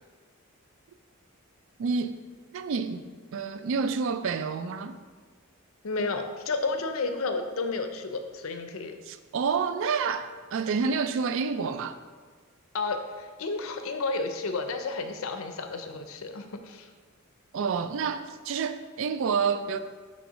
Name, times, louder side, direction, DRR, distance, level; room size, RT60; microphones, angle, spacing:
voice 1, 1.8-2.2 2.5-3.1 3.3-5.0 9.1-12.0 17.5-19.8, right 5 dB, 60° right, 0.3 m, -29 dB
voice 2, 5.8-9.0 12.7-16.9, left 3 dB, 65° left, 0.5 m, -31 dB
5.6 x 3.2 x 5.4 m
head